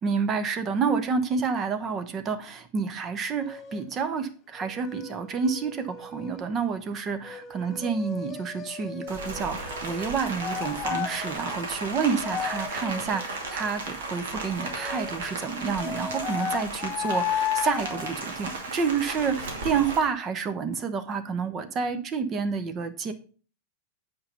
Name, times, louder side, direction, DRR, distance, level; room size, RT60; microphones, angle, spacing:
voice 1, 0.0-23.1, right 5 dB, 30° right, 9 dB, 1.1 m, -29 dB
sound 1, 3.4-3.8 4.6-6.4 7.2-10.1 10.4-13.7 14.6-18.2, left 8 dB, 20° left, 1.6 m, -35 dB
Rain, 9.1-20.0, right 2 dB, 60° right, 2.4 m, -35 dB
8.6 x 5.5 x 5.3 m, 0.39 s
figure-of-eight pair, 90°, 0 cm